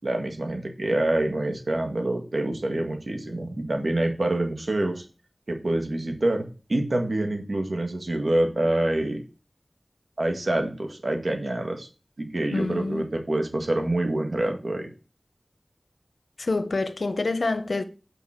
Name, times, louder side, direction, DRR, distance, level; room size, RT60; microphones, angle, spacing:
voice 1, 0.0-5.0 5.5-9.2 10.2-11.9 12.2-14.9, right 1 dB, 75° right, 1.8 m, -26 dB
voice 2, 12.5-13.1 16.4-17.8, left 3 dB, 85° left, 0.8 m, -27 dB
7.0 x 5.2 x 6.6 m
wide cardioid pair, 55°, 0 cm